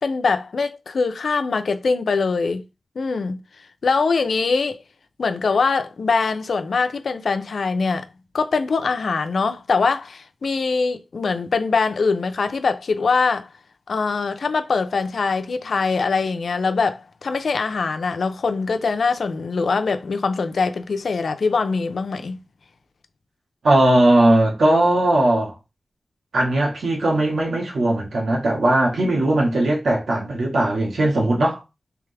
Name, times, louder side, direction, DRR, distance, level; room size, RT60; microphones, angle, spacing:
voice 1, 0.0-2.6 3.0-3.4 3.8-4.8 5.2-8.1 8.3-13.5 13.9-22.4, left 4 dB, 80° left, 0.6 m, -22 dB
voice 2, 23.6-25.5 26.3-31.6, right 1 dB, 90° right, 1.6 m, -18 dB
3.5 x 3.4 x 3.4 m
wide cardioid pair, 70°, 0 cm